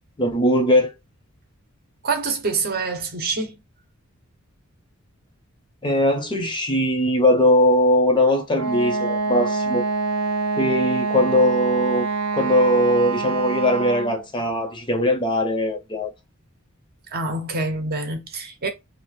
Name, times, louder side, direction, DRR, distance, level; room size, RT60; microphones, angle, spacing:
voice 1, 0.2-0.9 5.8-9.8 10.6-12.1 12.3-16.1, left 1 dB, 20° left, 0.6 m, -20 dB
voice 2, 2.0-3.6 17.1-18.7, right 3 dB, 45° right, 0.7 m, -26 dB
Wind instrument woodwind instrument, 8.5-14.2, right 4 dB, 80° right, 0.5 m, -25 dB
2.7 x 2.4 x 3.1 m
head